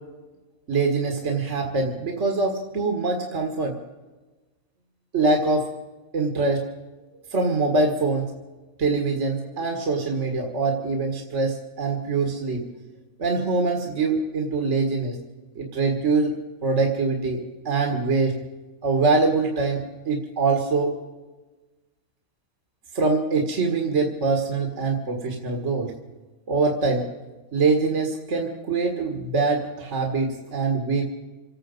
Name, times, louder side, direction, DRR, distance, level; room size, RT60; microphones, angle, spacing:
voice 1, 0.7-3.8 5.1-5.7 6.1-6.7 7.3-8.3 8.8-12.8 13.2-15.2 15.6-18.4 18.8-21.0 22.9-25.9 26.5-27.1 27.5-31.1, right 3 dB, 55° right, 3 dB, 2.0 m, -24 dB
27.0 x 9.2 x 5.4 m, 1.2 s
omnidirectional pair, 1.5 m